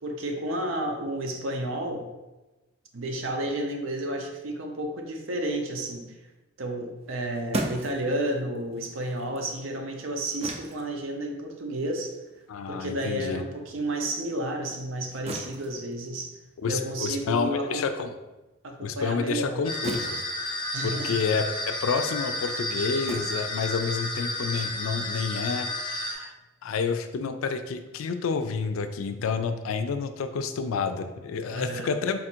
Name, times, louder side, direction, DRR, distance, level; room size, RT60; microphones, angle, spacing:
voice 1, 0.0-2.0 2.9-6.1 6.6-12.1 12.7-16.4 16.7-17.8 18.6-19.6 20.7-21.2 31.5-32.0, right 1 dB, 75° right, 3 dB, 0.7 m, -31 dB
sound 1, 7.0-13.8 14.1-24.4, right 2 dB, 30° right, 0.4 m, -40 dB
voice 2, 12.5-13.4 16.6-18.1 18.8-20.2 20.8-32.2, left 5 dB, 85° left, 9 dB, 0.4 m, -29 dB
sound 2, 19.6-26.1, left 1 dB, 25° left, 0.7 m, -32 dB
4.1 x 2.5 x 4.3 m, 1.1 s
head